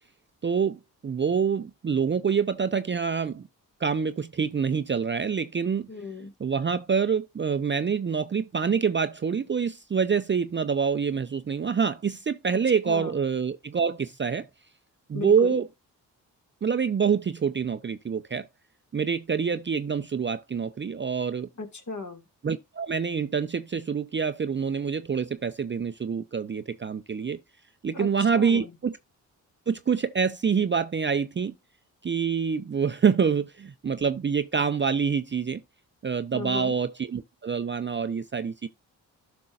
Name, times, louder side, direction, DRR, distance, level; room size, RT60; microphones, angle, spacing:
voice 1, 0.4-3.5 3.8-5.9 6.4-14.5 15.1-15.6 16.6-18.5 18.9-21.5 22.4-27.4 27.8-28.9 29.7-31.5 32.0-35.6 36.0-38.7, right 6 dB, 30° right, 0.5 m, -26 dB
voice 2, 5.9-6.3 12.5-13.2 15.1-15.6 21.6-22.2 27.9-28.8 36.3-36.7, left 3 dB, 45° left, 2.0 m, -36 dB
12.5 x 5.4 x 2.4 m
supercardioid pair, 45°, 41 cm